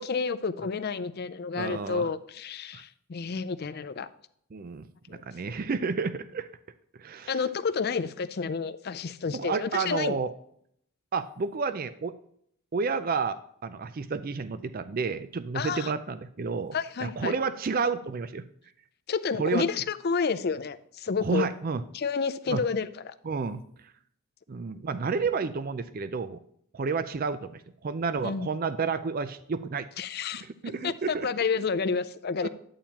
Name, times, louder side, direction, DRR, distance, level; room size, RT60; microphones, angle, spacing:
voice 1, 0.0-4.1 5.1-5.2 7.3-10.2 15.5-15.9 16.7-17.3 19.1-21.5 21.9-23.1 28.2-28.5 30.0-30.4 30.8-32.5, left 5 dB, 45° left, 13 dB, 0.5 m, -30 dB
voice 2, 1.5-2.1 2.7-2.8 4.5-6.5 7.0-7.4 9.3-10.3 11.1-12.1 12.7-18.4 19.3-19.6 21.2-21.8 22.5-22.6 23.2-23.6 24.5-26.4 26.7-29.9 30.4-31.6 32.4-32.5, right 5 dB, 40° right, 12 dB, 0.4 m, -31 dB
11.0 x 8.5 x 2.9 m, 0.68 s
head